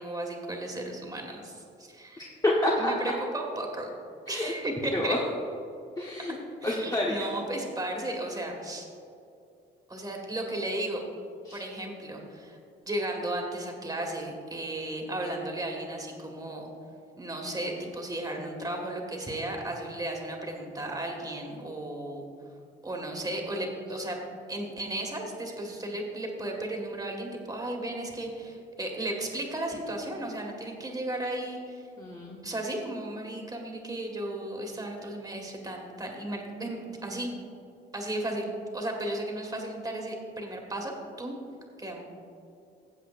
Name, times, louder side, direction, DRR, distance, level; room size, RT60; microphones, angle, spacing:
voice 1, 0.0-2.3 2.8-3.9 4.3-5.1 6.6-8.9 9.9-11.0 11.5-12.6 12.8-16.7 17.2-22.3 22.8-24.2 24.5-31.9 32.4-37.3 37.9-41.4 41.8-42.0, right 1 dB, 20° right, 1 dB, 1.9 m, -35 dB
voice 2, 2.2-2.9 4.3-4.5 4.9-5.2 6.0-6.3 6.6-7.2 11.4-11.6 32.0-32.4, left 1 dB, 20° left, -3 dB, 1.2 m, -28 dB
15.0 x 7.7 x 2.5 m, 2.6 s
cardioid pair, 90°, 20 cm